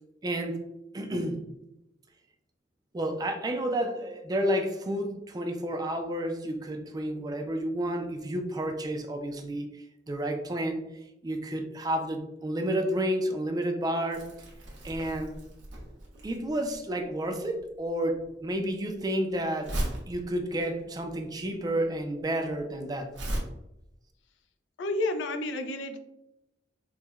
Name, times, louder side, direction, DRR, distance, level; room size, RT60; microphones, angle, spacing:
voice 1, 0.2-0.6 0.9-1.5 2.9-9.7 10.1-10.8 11.2-14.3 14.8-15.3 16.2-19.7 20.1-23.2, right 1 dB, 20° right, 0.3 m, -30 dB
Crumpling crinkling, 14.1-23.4, right 1 dB, 80° right, 1.0 m, -38 dB
voice 2, 24.8-26.0, left 2 dB, 85° left, 0.4 m, -30 dB
4.4 x 2.1 x 2.3 m
head